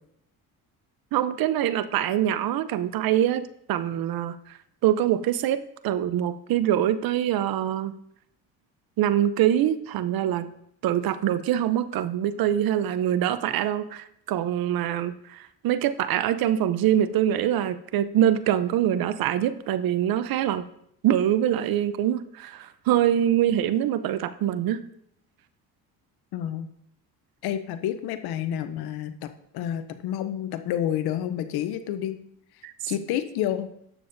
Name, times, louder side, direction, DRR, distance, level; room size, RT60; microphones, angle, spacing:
voice 1, 1.1-4.4 4.8-7.9 9.0-10.5 10.8-20.6 21.0-24.8 32.6-32.7, right 11 dB, 65° right, 13 dB, 0.7 m, -24 dB
voice 2, 26.3-26.7 27.4-32.2 32.9-33.7, left 10 dB, 70° left, 10 dB, 0.7 m, -29 dB
12.0 x 6.9 x 2.6 m, 0.73 s
supercardioid pair, 85°, 39 cm